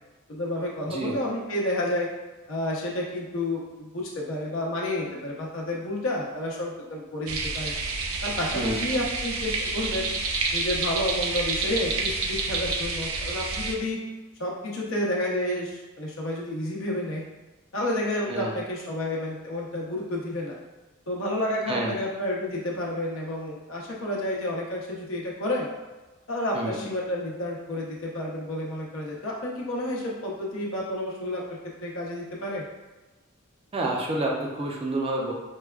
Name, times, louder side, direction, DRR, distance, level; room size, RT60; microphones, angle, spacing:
voice 1, 0.3-2.1 2.5-7.7 8.2-10.1 10.5-14.0 14.4-17.2 17.7-20.5 21.1-25.7 26.3-32.7, left 1 dB, 70° left, -2 dB, 0.7 m, -30 dB
sound 1, 7.3-13.7, right 3 dB, 90° right, 0.5 m, -29 dB
voice 2, 33.7-35.3, right 2 dB, 30° right, -1 dB, 0.4 m, -29 dB
4.6 x 2.2 x 2.3 m, 1.2 s
head